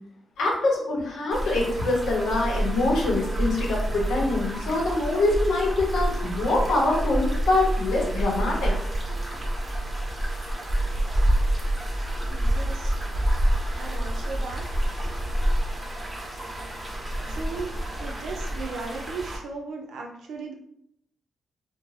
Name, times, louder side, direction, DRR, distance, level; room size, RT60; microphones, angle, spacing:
voice 1, 0.4-8.8 12.2-12.3 15.3-15.4, left 2 dB, 85° left, -1 dB, 0.8 m, -24 dB
sound 1, 1.3-19.4, right 1 dB, 25° right, 0.7 m, -28 dB
voice 2, 12.3-12.9 13.7-14.6 17.3-17.7 17.9-20.5, right 4 dB, 85° right, 1 dB, 0.5 m, -36 dB
2.5 x 2.1 x 3.1 m, 0.75 s
cardioid pair, 90°, 0 cm